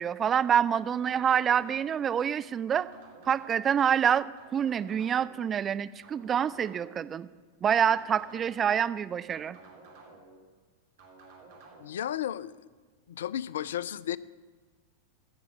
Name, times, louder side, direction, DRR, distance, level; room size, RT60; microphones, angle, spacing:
voice 1, 0.0-2.9 3.3-7.3 7.6-9.6, right 8 dB, 25° right, 13 dB, 0.4 m, -27 dB
sound 1, 1.1-2.1 2.7-3.8 4.4-5.4 6.0-7.1 7.7-8.7 9.3-10.4 11.0-11.8, right 3 dB, 55° right, 2.8 m, -53 dB
voice 2, 11.8-12.7 13.1-14.2, left 11 dB, 60° left, 20 dB, 0.3 m, -33 dB
15.0 x 7.0 x 6.8 m, 1.4 s
figure-of-eight pair, 90°, 0 cm